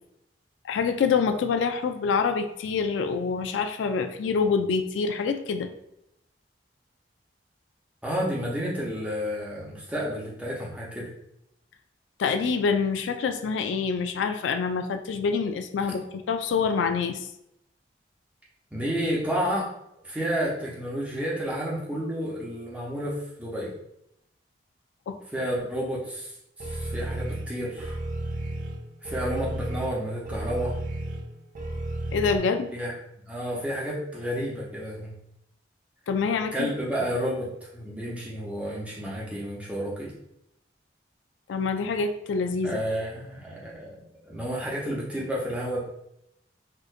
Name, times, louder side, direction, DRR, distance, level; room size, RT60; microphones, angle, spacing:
voice 1, 0.6-5.7 12.2-17.3 25.1-25.2 32.1-32.7 36.1-36.7 41.5-42.8, left 5 dB, 85° left, 7 dB, 0.3 m, -26 dB
voice 2, 8.0-11.1 15.8-15.9 18.7-19.7 20.0-23.7 25.3-26.3 26.6-28.0 29.0-30.7 32.7-32.9 33.3-35.1 36.5-40.1 42.6-45.8, equal, 5° right, -6 dB, 0.8 m, -31 dB
sound 1, 26.6-32.4, right 1 dB, 45° right, 0.4 m, -33 dB
4.4 x 2.5 x 2.4 m, 0.79 s
head